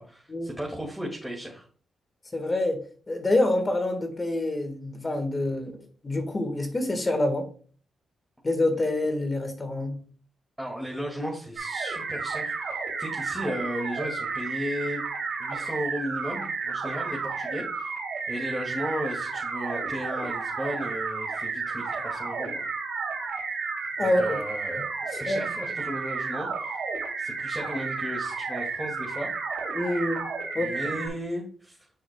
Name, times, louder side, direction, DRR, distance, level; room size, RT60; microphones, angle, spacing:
voice 1, 0.0-1.7 10.6-15.0 15.4-17.9 18.3-22.7 24.0-26.8 27.2-29.3 30.6-31.8, equal, ahead, 2.1 m, -35 dB
voice 2, 2.3-5.8 6.0-7.5 8.4-10.0 24.0-24.3 25.3-25.4 29.7-30.2 30.5-30.7, left 1 dB, 30° left, 1.5 m, -26 dB
sound 1, 11.6-31.1, right 4 dB, 75° right, 2.7 m, -32 dB
7.9 x 6.2 x 2.2 m
cardioid pair, 65°, 0 cm